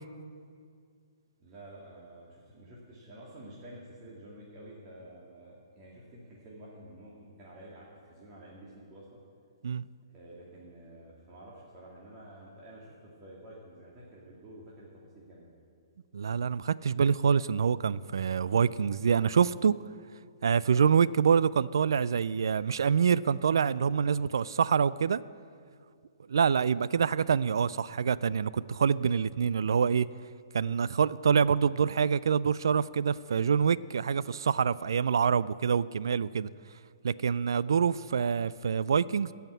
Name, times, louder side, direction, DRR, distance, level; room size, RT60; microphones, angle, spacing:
voice 1, 1.4-9.2 10.1-15.5, right 1 dB, 30° right, 2.3 m, -50 dB
voice 2, 16.1-19.7 20.4-25.2 26.3-30.1 30.5-36.5 37.0-39.3, right 6 dB, 65° right, 0.3 m, -26 dB
15.5 x 5.8 x 8.4 m
figure-of-eight pair, 125°, 2 cm